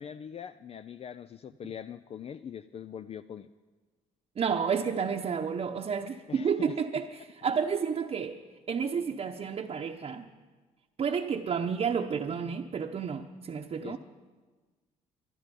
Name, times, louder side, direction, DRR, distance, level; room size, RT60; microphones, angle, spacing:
voice 1, 0.0-3.5 6.3-6.8 13.8-14.0, left 8 dB, 45° left, 0.5 m, -42 dB
voice 2, 4.4-8.4 8.7-10.3 11.0-14.0, right 6 dB, 45° right, 0.9 m, -31 dB
24.5 x 9.9 x 5.4 m
supercardioid pair, 75°, 14 cm